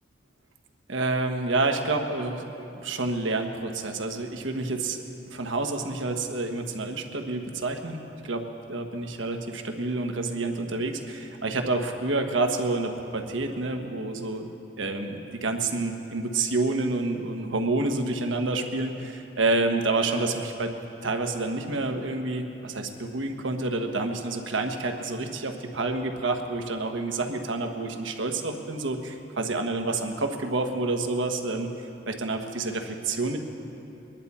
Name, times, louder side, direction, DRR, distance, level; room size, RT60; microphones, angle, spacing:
voice 1, 0.9-5.0 5.3-14.5 14.8-20.7 21.0-31.7 32.1-33.4, right 2 dB, 80° right, 4 dB, 1.2 m, -28 dB
23.0 x 10.5 x 4.2 m, 2.9 s
head